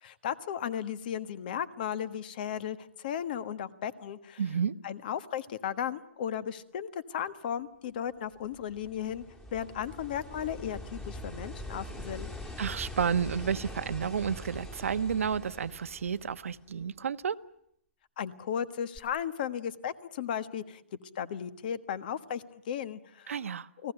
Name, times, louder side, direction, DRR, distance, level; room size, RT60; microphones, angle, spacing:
voice 1, 0.0-4.4 4.8-9.2 9.5-12.3 18.2-20.8 21.1-23.3 23.8-23.9, left 9 dB, 40° left, 13 dB, 1.4 m, -35 dB
voice 2, 4.4-4.8 12.6-17.4 23.3-23.7, right 7 dB, 75° right, 11 dB, 1.2 m, -31 dB
sound 1, 8.3-16.8 19.0-19.1, left 1 dB, 10° left, 2.2 m, -43 dB
29.5 x 18.5 x 9.0 m, 0.72 s
hypercardioid pair, 165°, 7 cm